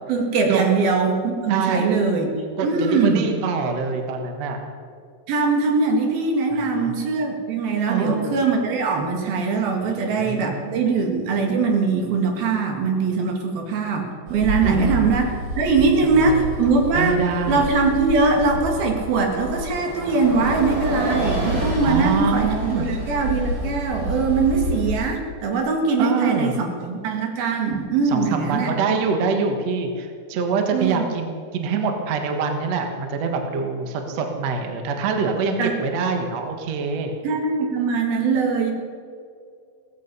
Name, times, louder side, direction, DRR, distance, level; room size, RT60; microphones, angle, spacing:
voice 1, 0.1-2.3 2.6-3.3 5.3-15.3 15.6-17.2 17.5-28.7 30.7-31.0 35.6-35.7 37.2-38.7, right 4 dB, 75° right, 3 dB, 3.8 m, -21 dB
voice 2, 1.5-1.9 2.6-4.6 6.5-6.9 7.9-8.4 9.8-10.8 14.6-15.1 15.8-16.5 16.9-17.7 21.8-22.9 26.0-26.5 28.1-37.2, right 5 dB, 55° right, 4 dB, 2.1 m, -25 dB
Bus, 14.3-24.9, equal, 30° right, 4.8 m, -28 dB
17.5 x 14.5 x 5.5 m, 2.2 s
omnidirectional pair, 4.3 m